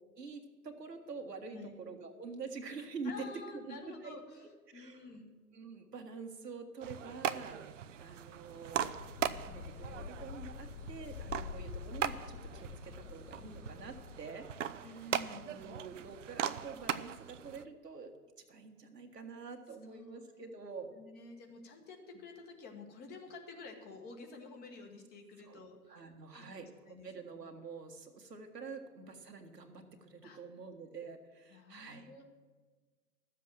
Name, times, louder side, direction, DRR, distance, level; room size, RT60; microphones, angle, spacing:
voice 1, 0.2-5.1 5.5-7.6 8.0-8.9 9.2-14.9 15.4-18.1 18.5-20.9 25.4-25.6 25.9-32.1, right 4 dB, 80° right, 4 dB, 1.7 m, -47 dB
voice 2, 3.0-4.4 4.7-5.3 14.8-15.5 19.9-20.2 20.9-26.1 26.4-27.1 30.2-30.4 31.5-32.2, left 3 dB, 20° left, 3 dB, 1.3 m, -50 dB
sound 1, 6.8-17.6, right 9 dB, 50° right, 0.6 m, -40 dB
sound 2, 8.7-14.2, left 7 dB, 60° left, 0.6 m, -47 dB
13.0 x 7.5 x 7.5 m, 1.4 s
figure-of-eight pair, 120°, 47 cm